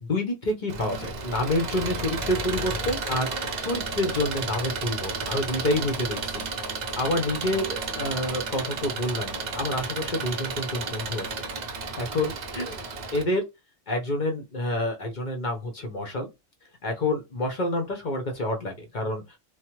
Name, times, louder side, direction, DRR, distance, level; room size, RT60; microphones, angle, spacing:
voice 1, 0.0-6.4 7.0-13.5 13.9-16.3 16.8-19.4, left 1 dB, 45° left, 0.7 m, -28 dB
Engine, 0.7-13.2, right 4 dB, 85° right, 0.3 m, -32 dB
3.0 x 2.0 x 2.9 m
omnidirectional pair, 1.4 m